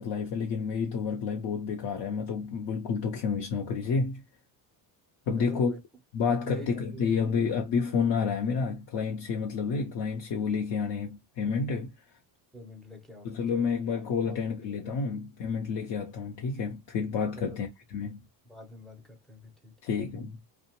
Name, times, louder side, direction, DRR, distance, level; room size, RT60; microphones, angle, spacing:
voice 1, 0.0-4.2 5.3-5.7 6.1-11.9 13.2-18.2 19.8-20.6, left 5 dB, 55° left, 0.7 m, -30 dB
voice 2, 5.4-5.8 6.4-7.4 12.5-13.7 14.3-14.9 17.4-17.6 18.4-19.8, right 2 dB, ahead, 0.4 m, -46 dB
2.8 x 2.1 x 2.8 m
cardioid pair, 150°, 45 cm